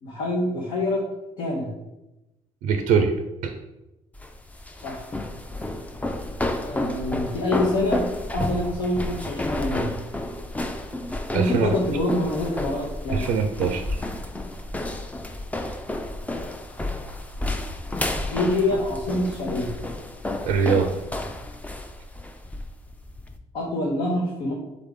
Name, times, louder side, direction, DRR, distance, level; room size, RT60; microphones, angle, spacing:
voice 1, 0.0-1.0 1.4-1.7 4.8-5.0 6.6-8.1 8.3-9.8 11.3-13.3 18.3-19.7 23.5-24.5, left 1 dB, 80° left, -4 dB, 0.9 m, -26 dB
voice 2, 2.6-3.1 3.4-3.5 11.3-11.7 13.1-13.8 20.5-20.9, right 6 dB, 85° right, 6 dB, 0.4 m, -22 dB
sound 1, 4.1-23.4, left 1 dB, 10° left, 0.4 m, -31 dB
3.8 x 3.5 x 3.7 m, 0.97 s
supercardioid pair, 80°, 13 cm